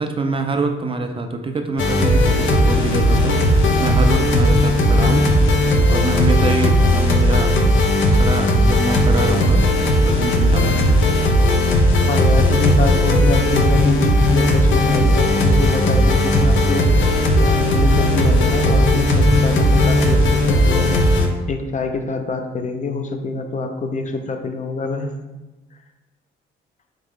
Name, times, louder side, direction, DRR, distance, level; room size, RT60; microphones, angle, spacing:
voice 1, 0.0-3.4 3.8-5.3 5.9-7.5 8.1-9.7 10.0-11.0, right 3 dB, 25° right, 5 dB, 0.4 m, -25 dB
sound 1, 1.8-21.3, left 1 dB, 75° left, 0.7 m, -16 dB
voice 2, 12.1-16.9 17.4-21.0 21.5-25.1, left 3 dB, 40° left, 5 dB, 0.5 m, -25 dB
3.6 x 3.6 x 3.2 m, 1.1 s
cardioid pair, 90°, 20 cm